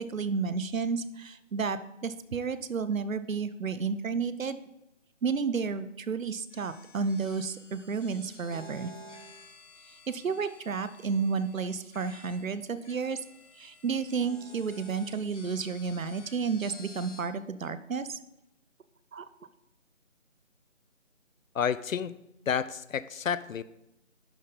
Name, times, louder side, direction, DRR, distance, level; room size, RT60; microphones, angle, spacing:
voice 1, 0.0-4.6 5.2-8.9 10.1-13.2 13.6-18.2 19.1-19.3, right 5 dB, 90° right, 13 dB, 0.7 m, -31 dB
sound 1, 6.5-17.2, left 2 dB, 65° left, 1.7 m, -52 dB
voice 2, 21.5-22.1 22.5-23.6, left 7 dB, 85° left, 16 dB, 0.5 m, -30 dB
11.0 x 4.0 x 3.9 m, 0.87 s
figure-of-eight pair, 175°, 39 cm